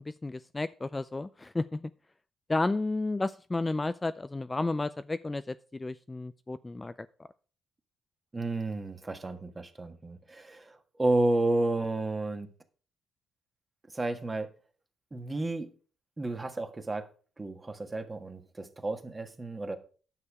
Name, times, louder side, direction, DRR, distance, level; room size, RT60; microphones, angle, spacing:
voice 1, 0.1-1.8 2.5-6.9, left 2 dB, 20° left, 13 dB, 0.3 m, -32 dB
voice 2, 8.3-12.5 13.9-14.5 15.1-15.7 16.2-17.1 17.4-19.8, right 2 dB, 20° right, 6 dB, 1.5 m, -31 dB
9.7 x 6.7 x 4.7 m, 0.40 s
cardioid pair, 90°, 0 cm